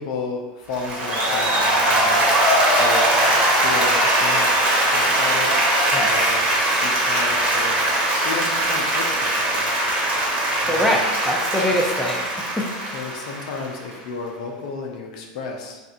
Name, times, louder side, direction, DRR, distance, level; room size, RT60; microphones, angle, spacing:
voice 1, 0.0-2.2 2.8-4.5 4.9-5.6 6.1-7.8 8.2-9.9 10.6-10.9 12.9-15.8, left 4 dB, 65° left, 1 dB, 0.6 m, -33 dB
Applause, 0.7-13.9, right 1 dB, 40° right, 1.4 m, -20 dB
voice 2, 5.9-6.4 10.6-12.9, equal, 5° left, -2 dB, 0.7 m, -24 dB
3.4 x 2.5 x 4.2 m, 1.2 s
hypercardioid pair, 90°, 4 cm